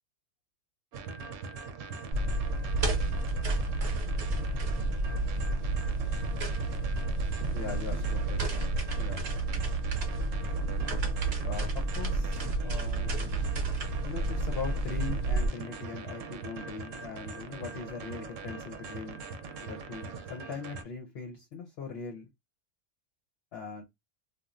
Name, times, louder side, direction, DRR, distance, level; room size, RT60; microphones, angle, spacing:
sound 1, 0.9-20.8, right 4 dB, 90° right, 0.9 m, -41 dB
sound 2, 2.1-15.5, right 2 dB, 60° right, 1.0 m, -30 dB
voice 1, 7.5-9.2 11.4-13.4 14.1-19.2 19.6-22.3 23.5-23.8, left 5 dB, 60° left, 0.9 m, -41 dB
3.0 x 2.4 x 2.4 m
omnidirectional pair, 1.3 m